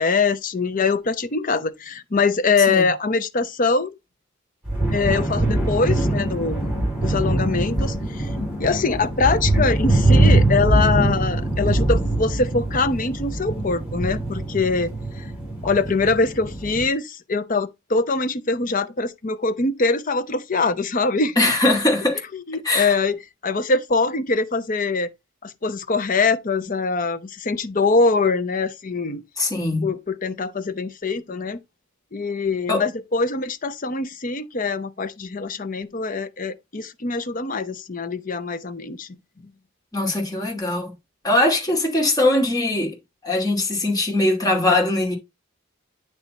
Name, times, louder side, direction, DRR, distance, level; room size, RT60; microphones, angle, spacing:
voice 1, 0.0-3.9 4.9-8.3 8.6-14.9 15.2-15.3 15.6-21.4 22.5-23.2 23.4-25.1 25.4-29.2 29.8-31.6 32.1-39.1, left 4 dB, 40° left, 0.7 m, -23 dB
sound 1, 4.7-16.9, right 2 dB, 5° right, 5.1 m, -22 dB
voice 2, 21.4-22.2 22.6-23.0 29.4-29.9 32.7-32.8 39.9-40.9 41.2-43.0 43.2-45.1, left 2 dB, 20° left, 2.6 m, -21 dB
9.6 x 3.4 x 4.1 m
head